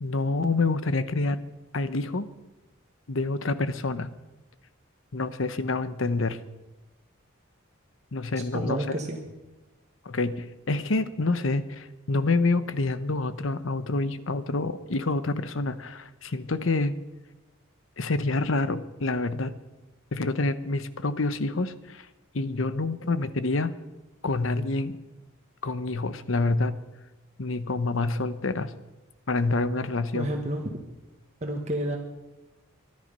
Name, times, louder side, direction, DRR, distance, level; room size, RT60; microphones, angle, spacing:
voice 1, 0.0-1.4 1.7-2.3 3.1-4.1 5.1-6.4 8.1-9.0 10.0-16.9 18.0-19.5 20.1-22.1 22.3-23.7 24.2-25.0 25.6-26.7 27.4-28.7 29.3-30.3, left 3 dB, 70° left, 13 dB, 1.0 m, -27 dB
voice 2, 8.5-9.2 30.1-30.8 31.4-32.0, right 1 dB, 35° right, 2 dB, 1.5 m, -30 dB
24.0 x 11.0 x 5.5 m, 1.1 s
head